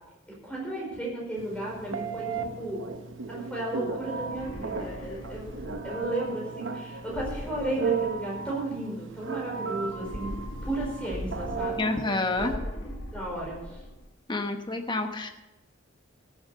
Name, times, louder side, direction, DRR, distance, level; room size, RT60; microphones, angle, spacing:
voice 1, 0.4-2.8 3.3-5.5 5.8-10.3 10.6-11.8 12.4-12.5 12.8-13.8, right 1 dB, 5° left, -4 dB, 4.8 m, -34 dB
Telephone, 1.4-12.6, right 5 dB, 70° right, 0.9 m, -36 dB
sound 1, 4.2-6.1 7.0-8.5 9.9-12.0 12.3-14.0, equal, 80° left, 1.9 m, -40 dB
voice 2, 11.8-12.5 14.3-15.3, left 2 dB, 20° left, 6 dB, 1.0 m, -28 dB
14.0 x 7.5 x 6.8 m, 0.98 s
head